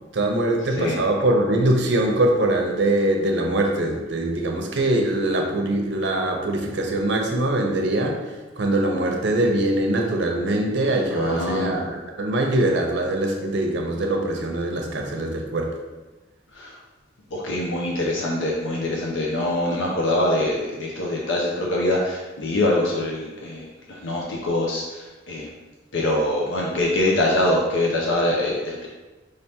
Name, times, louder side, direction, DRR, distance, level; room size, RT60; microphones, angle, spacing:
voice 1, 0.1-8.2 8.6-15.7, right 1 dB, 65° right, 2 dB, 0.7 m, -22 dB
voice 2, 11.1-11.7 16.5-16.8 17.3-25.5 25.9-28.9, left 1 dB, 80° left, -2 dB, 0.6 m, -24 dB
5.1 x 3.4 x 2.8 m, 1.2 s
head